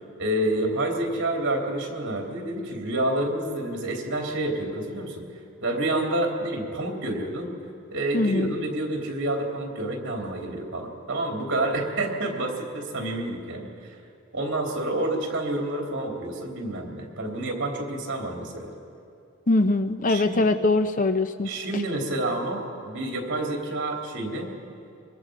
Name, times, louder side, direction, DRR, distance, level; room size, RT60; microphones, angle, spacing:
voice 1, 0.2-5.2 5.6-7.5 7.9-13.7 14.3-18.7 20.1-20.5 21.4-24.5, right 1 dB, 55° right, 0 dB, 3.2 m, -28 dB
voice 2, 8.1-8.5 19.5-21.5, left 2 dB, 35° left, 10 dB, 0.6 m, -22 dB
24.5 x 22.5 x 5.1 m, 2.5 s
head